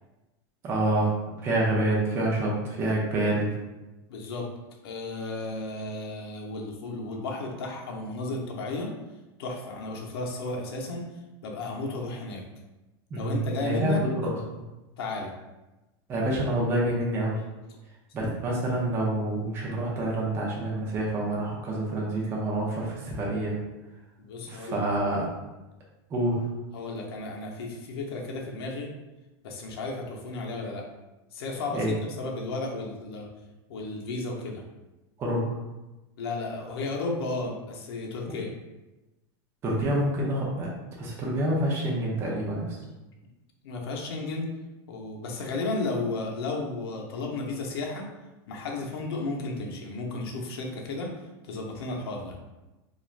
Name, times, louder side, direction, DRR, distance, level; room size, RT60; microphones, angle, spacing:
voice 1, 0.6-3.6 13.1-14.6 16.1-17.4 18.1-23.6 24.5-25.3 26.1-26.5 31.7-32.0 35.2-35.4 39.6-42.8, right 1 dB, 20° right, -3 dB, 0.5 m, -27 dB
voice 2, 4.1-4.5 4.8-8.9 9.4-11.1 11.4-12.4 13.2-14.0 15.0-15.3 24.2-24.8 26.7-28.9 29.4-30.9 31.3-33.3 33.7-34.6 36.2-38.5 43.6-44.5 44.9-48.1 48.5-51.1 51.4-52.4, left 2 dB, 85° left, 0 dB, 0.6 m, -33 dB
3.1 x 2.4 x 2.4 m, 1.1 s
supercardioid pair, 170°, 13 cm